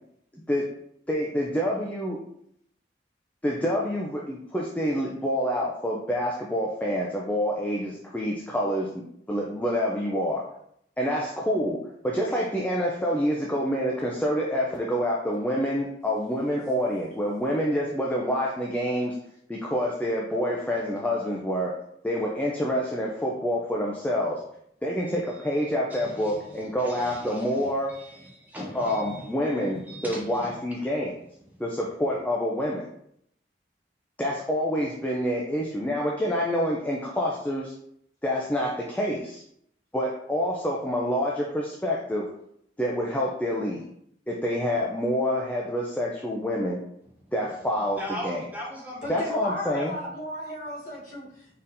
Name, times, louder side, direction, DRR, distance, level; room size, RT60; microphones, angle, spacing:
voice 1, 1.1-2.2 3.4-10.4 11.0-19.2 19.5-21.7 22.0-24.4 24.8-27.9 28.7-31.2 31.6-32.9 34.2-37.7 38.2-39.4 39.9-42.3 42.8-43.9 44.3-46.8 47.3-48.5 49.1-49.9, equal, 10° left, -3 dB, 0.4 m, -27 dB
voice 2, 25.9-30.6 48.0-49.3 49.8-49.9, equal, 10° right, -3 dB, 0.8 m, -40 dB
voice 3, 49.0-51.5, left 1 dB, 45° left, -6 dB, 1.2 m, -35 dB
4.2 x 3.6 x 2.6 m, 0.73 s
head